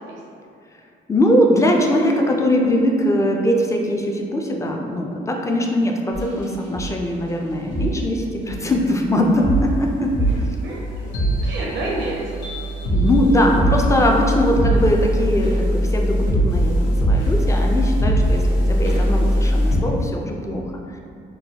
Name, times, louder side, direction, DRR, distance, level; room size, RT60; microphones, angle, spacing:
voice 1, 1.1-10.6 12.9-20.6, equal, 15° left, 1 dB, 0.4 m, -21 dB
sound 1, 6.1-6.4 6.7-6.9 7.7-7.9 8.6-19.8, equal, 90° left, 0.9 m, -21 dB
voice 2, 10.6-12.4 14.6-14.9, right 2 dB, 90° right, -3 dB, 0.6 m, -30 dB
3.8 x 2.2 x 2.8 m, 2.4 s
cardioid pair, 90°, 20 cm